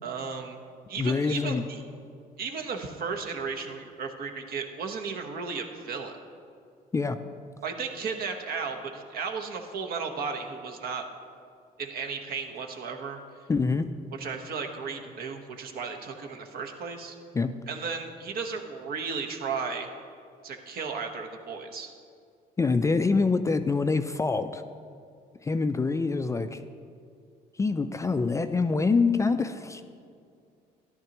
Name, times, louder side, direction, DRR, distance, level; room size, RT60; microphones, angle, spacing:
voice 1, 0.0-0.6 0.9-1.8 2.4-6.1 7.6-11.0 11.8-13.2 14.2-17.1 17.7-19.9 20.4-21.9, right 5 dB, 60° right, 4 dB, 1.1 m, -34 dB
voice 2, 1.0-1.6 6.9-7.2 13.5-13.9 17.3-17.5 22.6-24.6 25.4-26.6 27.6-29.8, left 4 dB, 20° left, 9 dB, 0.3 m, -25 dB
13.5 x 11.0 x 3.0 m, 2.3 s
cardioid pair, 110°, 17 cm